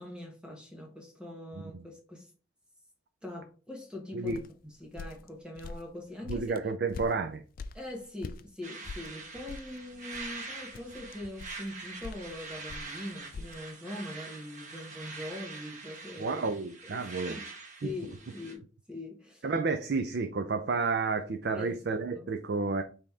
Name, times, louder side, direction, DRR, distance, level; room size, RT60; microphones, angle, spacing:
voice 1, 0.0-2.3 3.2-6.5 7.7-16.4 16.8-17.5 17.8-19.4 21.5-21.7 22.1-22.2, left 1 dB, 5° right, 1.1 m, -42 dB
sound 1, 4.3-8.5 8.8-13.6, left 3 dB, 45° left, 0.3 m, -44 dB
voice 2, 6.3-7.4 16.2-17.4 17.8-17.9 19.4-22.8, right 4 dB, 55° right, 0.4 m, -31 dB
sound 2, 8.6-18.5, right 3 dB, 40° right, 1.1 m, -44 dB
5.2 x 2.9 x 3.5 m
head